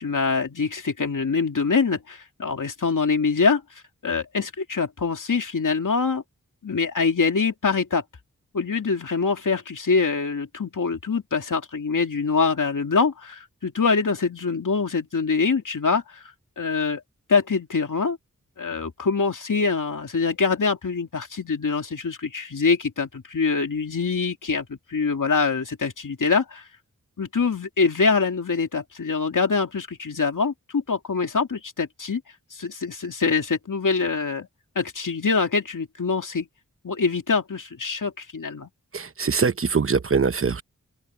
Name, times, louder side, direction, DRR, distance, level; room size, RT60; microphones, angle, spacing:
voice 1, 0.0-3.6 4.0-6.2 6.6-8.0 8.5-16.2 16.6-17.0 17.3-18.2 18.6-26.6 27.2-32.2 32.5-34.5 34.8-36.5 36.8-38.7, left 4 dB, 80° left, 2.6 m, -24 dB
voice 2, 38.9-40.6, right 5 dB, 45° right, 0.9 m, -23 dB
open air
wide cardioid pair, 80°, 31 cm